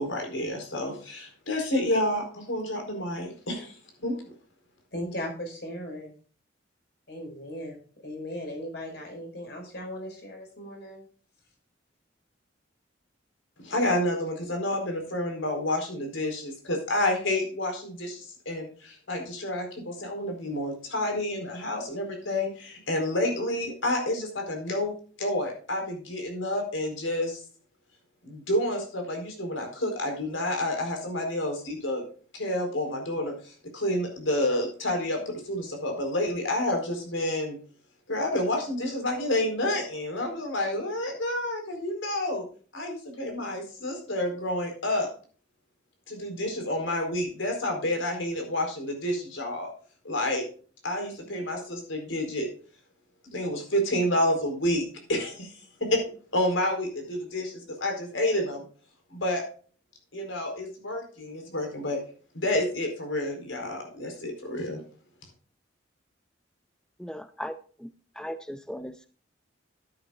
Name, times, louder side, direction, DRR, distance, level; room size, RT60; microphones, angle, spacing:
voice 1, 0.0-3.8 4.0-4.2 13.6-27.4 28.2-32.0 32.3-37.6 38.1-42.4 42.7-45.1 46.1-49.7 50.0-50.4 50.8-52.5 53.3-55.5 55.8-56.0 56.3-58.6 59.1-59.4 60.1-62.0 62.3-64.8, left 1 dB, 85° left, 3 dB, 4.4 m, -29 dB
voice 2, 4.9-6.1 7.1-11.1, equal, 55° left, 2 dB, 5.2 m, -37 dB
voice 3, 67.0-67.9 68.2-69.1, equal, 5° left, 11 dB, 0.4 m, -38 dB
12.0 x 11.0 x 2.4 m, 0.41 s
head